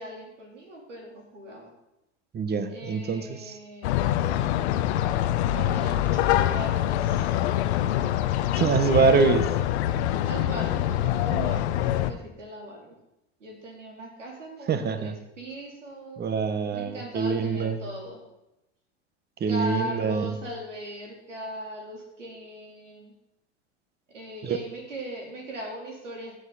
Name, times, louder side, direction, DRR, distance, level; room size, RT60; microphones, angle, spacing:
voice 1, 0.0-1.7 2.7-4.1 5.5-7.3 7.8-8.1 10.2-13.0 13.4-16.3 16.7-18.2 19.5-23.1 24.1-26.4, right 1 dB, 85° right, 0 dB, 3.9 m, -39 dB
voice 2, 2.3-3.3 8.5-9.5 14.7-15.1 16.2-17.8 19.4-20.3 24.4-24.6, right 5 dB, 25° right, 10 dB, 1.3 m, -24 dB
sound 1, 3.8-12.1, left 12 dB, 65° left, 0.9 m, -25 dB
16.0 x 9.3 x 4.2 m, 0.89 s
hypercardioid pair, 85°, 36 cm